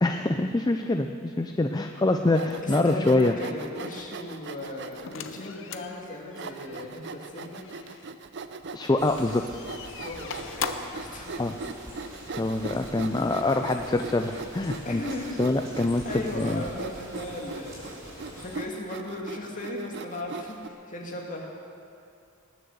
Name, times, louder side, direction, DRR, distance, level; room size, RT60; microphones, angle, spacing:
voice 1, 0.0-3.4 8.7-9.6 11.4-11.6 12.3-15.0 15.4-16.6, left 2 dB, 20° left, 6 dB, 0.4 m, -25 dB
Sawing, 2.3-5.1 5.7-5.8 6.3-20.7, right 4 dB, 55° right, 0.5 m, -40 dB
voice 2, 2.6-7.7 10.0-11.3 12.7-12.8 14.8-15.4 15.8-18.0 18.3-21.5, left 1 dB, 35° left, -1 dB, 2.1 m, -37 dB
sound 1, 5.1-8.1 9.1-11.1, left 7 dB, 60° left, 0.7 m, -39 dB
sound 2, 9.0-18.6, equal, 15° right, 4.6 m, -45 dB
20.0 x 7.4 x 7.0 m, 2.4 s
head